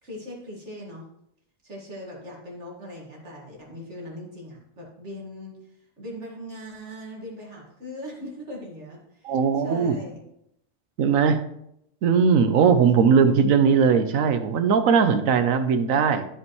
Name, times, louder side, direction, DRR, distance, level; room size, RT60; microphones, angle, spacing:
voice 1, 0.0-1.1 1.6-10.2, equal, 55° right, -3 dB, 2.2 m, -40 dB
voice 2, 9.2-10.0 11.0-11.4 12.0-16.3, right 6 dB, 80° right, 9 dB, 1.2 m, -19 dB
12.5 x 5.3 x 3.1 m, 0.77 s
omnidirectional pair, 1.4 m